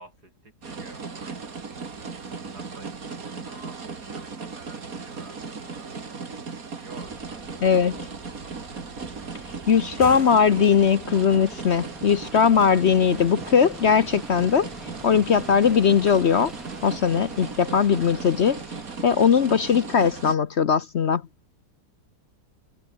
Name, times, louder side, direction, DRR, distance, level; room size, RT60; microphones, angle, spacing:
voice 1, 0.0-2.1 2.5-6.0 6.7-7.8, right 2 dB, 80° right, 7.8 m, -50 dB
sound 1, 0.6-20.4, right 5 dB, 60° right, 2.8 m, -37 dB
sound 2, 7.0-20.3, equal, ahead, 2.6 m, -46 dB
voice 2, 7.6-8.0 9.7-14.7 15.0-16.5 16.8-18.6 19.0-21.2, left 7 dB, 50° left, 0.9 m, -20 dB
sound 3, 9.8-11.1, right 2 dB, 25° right, 3.5 m, -41 dB
omnidirectional pair, 1.7 m